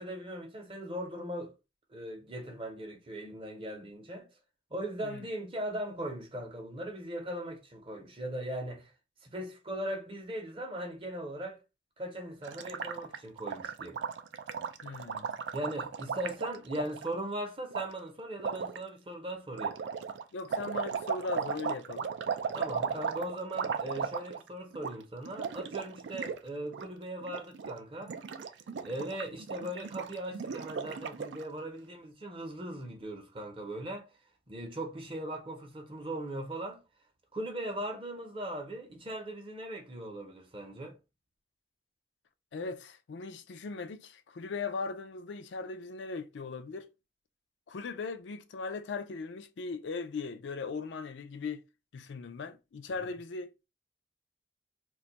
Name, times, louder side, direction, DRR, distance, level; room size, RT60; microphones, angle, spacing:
voice 1, 0.0-1.5 1.9-4.3 4.7-8.9 9.2-11.6 12.0-14.0 15.5-19.8 22.5-28.1 28.8-34.1 34.5-36.8 37.3-41.0, right 1 dB, 30° right, 0.6 m, -39 dB
Gurgling, 12.4-17.1 17.7-17.8 18.4-18.8 19.5-24.5 24.7-24.9 25.2-26.4 26.6-26.9 27.2-27.7 28.0-31.4, right 6 dB, 80° right, 0.4 m, -36 dB
voice 2, 14.8-15.3 20.3-22.1 42.5-46.9 47.7-51.6 51.9-53.7, left 4 dB, 85° left, 0.4 m, -39 dB
2.5 x 2.3 x 4.0 m
head